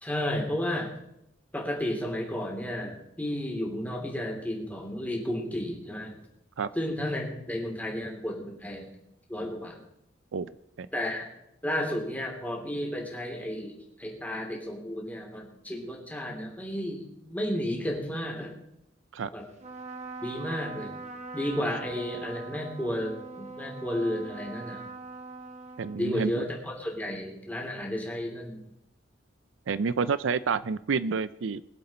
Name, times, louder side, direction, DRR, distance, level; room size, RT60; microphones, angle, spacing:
voice 1, 0.0-0.9 1.5-6.2 6.7-8.9 9.3-9.8 10.9-11.3 11.6-18.5 19.3-19.5 20.2-20.9 21.3-24.8 25.9-28.6, left 1 dB, 10° left, 0 dB, 3.1 m, -32 dB
Trumpet, 19.5-26.4, right 3 dB, 35° right, 1.7 m, -42 dB
voice 2, 25.8-26.4 29.7-31.6, right 5 dB, 70° right, 16 dB, 0.5 m, -29 dB
22.5 x 7.9 x 4.3 m, 0.81 s
head